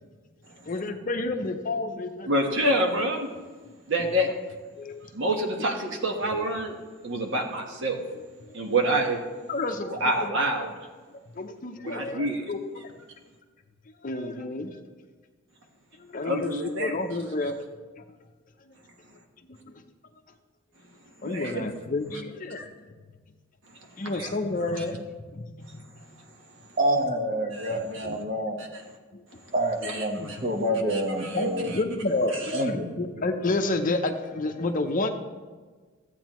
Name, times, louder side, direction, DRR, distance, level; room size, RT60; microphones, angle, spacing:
voice 1, 0.7-2.3 4.8-5.0 9.5-10.3 11.4-12.9 14.0-14.8 16.1-16.5 16.8-17.6 19.5-19.6 21.2-22.7 24.0-25.0 25.3-25.9 27.7-28.2 30.2-30.3 31.3-35.1, left 2 dB, 40° left, 6 dB, 0.6 m, -30 dB
voice 2, 2.3-3.3 3.9-4.3 5.1-6.7 7.0-8.0 8.5-9.2 9.9-10.7 11.8-12.5 16.2-16.9 21.2-21.7 24.2-24.3 24.8-24.9 27.5-28.1 29.8-30.4 30.9-31.8 32.3-32.6, right 1 dB, 60° right, 2 dB, 1.3 m, -27 dB
voice 3, 26.8-28.6 29.5-31.7 32.5-32.9, right 1 dB, 40° right, 3 dB, 1.1 m, -27 dB
14.5 x 8.3 x 3.1 m, 1.4 s
head